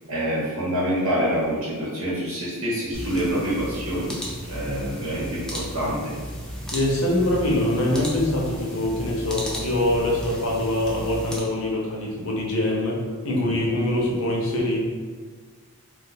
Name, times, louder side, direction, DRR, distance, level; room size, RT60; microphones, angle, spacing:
voice 1, 0.1-4.2 4.5-6.1, equal, 70° right, -8 dB, 0.9 m, -26 dB
sound 1, 2.9-11.4, equal, 5° left, 0.4 m, -34 dB
voice 2, 6.7-14.8, left 1 dB, 65° left, -2 dB, 0.7 m, -24 dB
2.4 x 2.3 x 4.0 m, 1.5 s
head